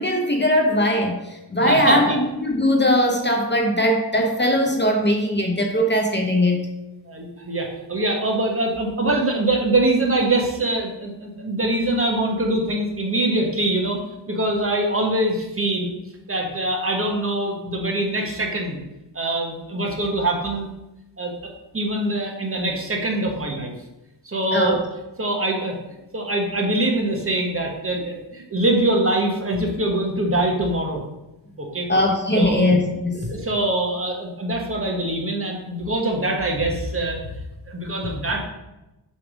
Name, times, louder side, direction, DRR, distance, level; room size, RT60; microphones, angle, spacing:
voice 1, 0.0-6.7 24.5-24.7 31.9-33.2, left 1 dB, 25° left, 2 dB, 0.9 m, -20 dB
voice 2, 1.6-2.2 7.1-14.0 14.3-15.9 16.3-18.8 19.1-20.7 21.2-23.7 24.2-24.8 25.2-25.8 26.1-31.0 31.6-31.9 32.3-32.7 33.1-37.3 37.7-38.4, right 1 dB, 30° right, 1 dB, 1.4 m, -23 dB
7.0 x 3.4 x 6.2 m, 0.95 s
wide cardioid pair, 130°, 44 cm